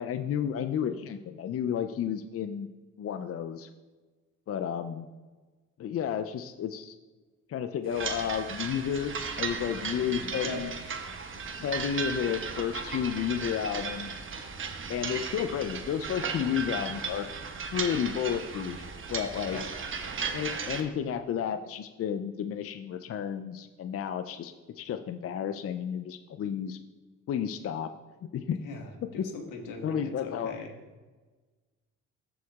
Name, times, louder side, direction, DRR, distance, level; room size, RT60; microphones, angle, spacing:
voice 1, 0.0-2.7 3.0-3.7 4.5-5.1 5.8-7.0 7.5-10.7 11.6-14.1 14.9-17.3 17.7-19.6 20.3-26.8 27.3-27.9 28.2-28.6 29.2-29.3 29.8-30.5, left 8 dB, 50° left, 8 dB, 0.5 m, -32 dB
sound 1, 7.9-20.8, right 5 dB, 40° right, 1.1 m, -36 dB
voice 2, 10.4-11.1 19.5-19.7 28.6-30.7, left 3 dB, 85° left, 2 dB, 1.6 m, -40 dB
14.0 x 4.7 x 3.6 m, 1.3 s
cardioid pair, 90°, 30 cm